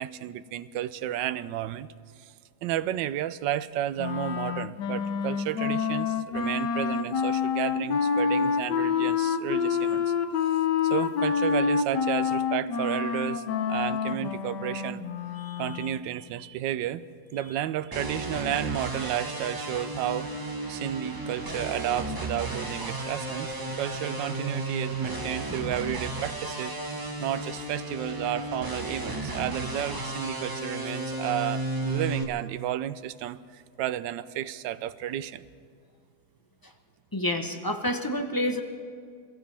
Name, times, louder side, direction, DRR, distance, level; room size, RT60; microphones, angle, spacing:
voice 1, 0.0-1.9 2.2-2.3 2.6-10.1 10.8-15.0 15.6-17.0 17.3-20.3 20.7-26.7 27.2-35.4, right 12 dB, 90° right, 15 dB, 1.3 m, -32 dB
Wind instrument woodwind instrument, 4.0-16.0, left 6 dB, 75° left, 1.4 m, -27 dB
sound 1, 17.9-32.2, right 2 dB, 15° right, 0.9 m, -34 dB
voice 2, 37.1-38.6, left 1 dB, 30° left, 4 dB, 0.4 m, -29 dB
27.5 x 15.5 x 3.4 m, 2.1 s
omnidirectional pair, 1.9 m